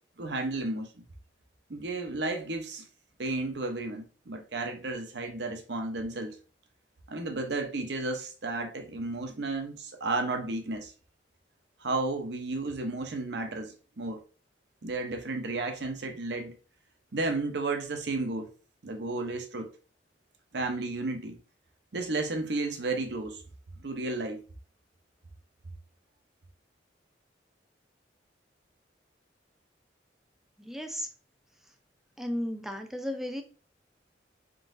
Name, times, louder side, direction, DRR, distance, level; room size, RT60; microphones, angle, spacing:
voice 1, 0.2-0.9 1.7-2.9 3.2-6.4 7.1-10.9 11.8-14.2 14.8-16.5 17.1-18.5 18.8-19.7 20.5-21.4 21.9-23.4 23.8-24.4, right 2 dB, 65° right, 0.7 m, -33 dB
voice 2, 30.6-31.1 32.2-33.4, equal, ahead, 0.5 m, -34 dB
3.8 x 3.6 x 2.5 m
head